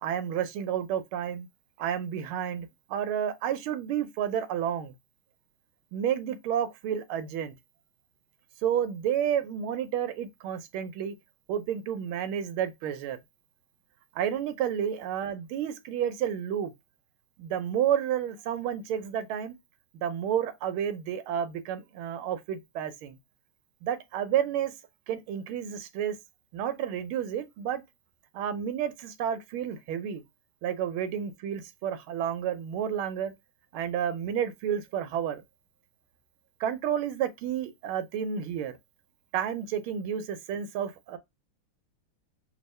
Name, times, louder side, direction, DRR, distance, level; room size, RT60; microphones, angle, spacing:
voice 1, 0.0-1.5 1.8-4.9 5.9-7.5 8.6-11.2 11.5-13.2 14.1-16.7 17.4-19.5 19.9-23.2 23.8-24.7 25.1-26.2 26.5-27.8 28.3-30.2 30.6-33.3 33.7-35.4 36.6-38.8 39.3-41.2, right 9 dB, 75° right, 1.5 m, -30 dB
3.6 x 2.8 x 3.1 m
omnidirectional pair, 2.4 m